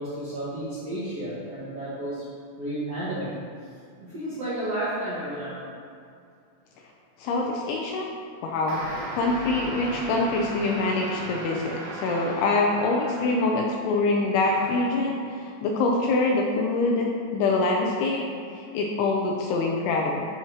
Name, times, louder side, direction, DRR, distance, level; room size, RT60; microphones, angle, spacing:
voice 1, 0.0-2.2 2.6-3.3 4.0-5.6, right 1 dB, 65° right, -12 dB, 1.5 m, -32 dB
voice 2, 7.2-8.1 8.4-8.8 9.1-18.2 18.6-20.3, left 3 dB, 80° left, 0 dB, 2.4 m, -25 dB
sound 1, 8.7-13.7 14.4-15.0, right 1 dB, 85° right, 3.5 m, -37 dB
11.0 x 4.5 x 2.9 m, 2.3 s
omnidirectional pair, 5.0 m